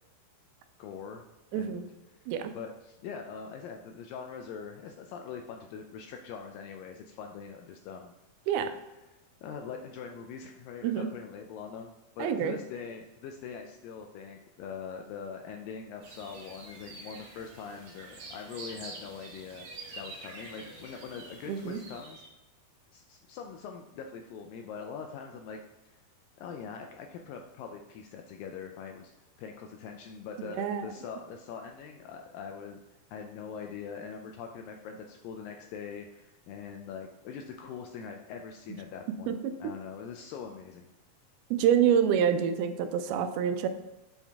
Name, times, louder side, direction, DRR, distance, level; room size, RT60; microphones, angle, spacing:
voice 1, 0.8-1.2 1.5-1.9 2.2-8.1 9.4-19.7 20.0-22.2 22.9-25.6 25.9-26.0 26.4-29.1 29.4-32.8 33.1-40.9, left 6 dB, 80° left, 4 dB, 2.0 m, -43 dB
voice 2, 1.5-1.8 2.3-2.5 8.5-8.8 10.8-11.1 12.2-12.6 21.5-21.8 30.4-30.9 39.3-39.7 41.5-43.7, right 8 dB, 85° right, 8 dB, 2.5 m, -27 dB
sound 1, 16.0-22.3, right 2 dB, 65° right, 1.4 m, -47 dB
7.2 x 5.5 x 3.5 m, 1.0 s
omnidirectional pair, 4.4 m